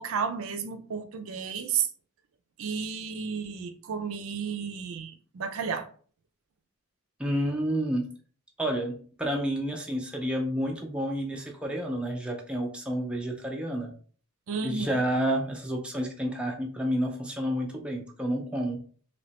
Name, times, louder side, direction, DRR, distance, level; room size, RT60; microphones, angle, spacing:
voice 1, 0.0-1.9 2.6-5.9 14.5-15.0, right 6 dB, 70° right, 0.4 m, -32 dB
voice 2, 7.2-8.1 8.6-13.9 14.6-18.8, equal, 5° right, 0.4 m, -30 dB
3.1 x 2.8 x 2.9 m
head